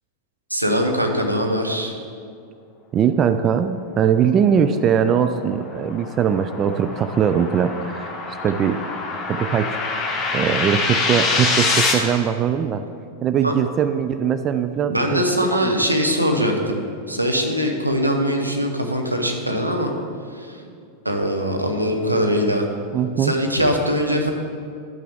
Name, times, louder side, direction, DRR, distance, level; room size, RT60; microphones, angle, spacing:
voice 1, 0.5-1.9 13.4-13.5 14.9-19.9 20.3-20.6 21.0-22.7 23.2-24.3, equal, 85° right, 2 dB, 0.9 m, -22 dB
voice 2, 2.9-8.1 8.4-8.8 9.3-9.8 10.3-12.8 13.2-15.7 22.9-23.3, right 8 dB, 30° right, 9 dB, 0.3 m, -21 dB
sound 1, 5.1-11.9, left 3 dB, 20° left, 1.6 m, -25 dB
12.0 x 5.8 x 3.6 m, 2.3 s
figure-of-eight pair, 90°, 0 cm